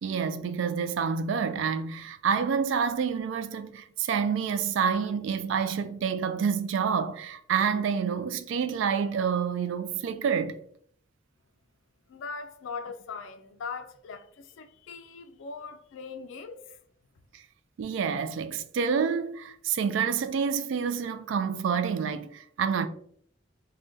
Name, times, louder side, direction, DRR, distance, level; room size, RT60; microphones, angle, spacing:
voice 1, 0.0-10.6 17.8-22.9, right 6 dB, 70° right, 0.3 m, -28 dB
voice 2, 12.1-16.8, left 5 dB, 75° left, 0.3 m, -40 dB
3.6 x 2.2 x 2.6 m
head